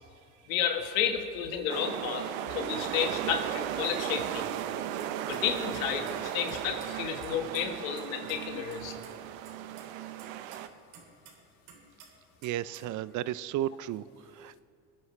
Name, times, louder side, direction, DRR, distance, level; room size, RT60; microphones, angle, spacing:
voice 1, 0.5-4.4 5.3-9.0, left 8 dB, 90° left, 5 dB, 1.6 m, -32 dB
sound 1, 1.7-10.7, right 11 dB, 85° right, 0.8 m, -36 dB
sound 2, 3.5-3.6 3.8-3.9 4.2-4.3 4.6-5.4 5.7-6.1 6.5-8.0 8.3-8.4 8.7-9.1 9.4-11.4 11.7-12.1 12.4-12.9, right 7 dB, 70° right, 3.7 m, -52 dB
voice 2, 12.4-14.0 14.4-14.6, right 13 dB, 50° right, 18 dB, 0.5 m, -33 dB
24.5 x 9.3 x 3.2 m, 2.3 s
supercardioid pair, 90°, 39 cm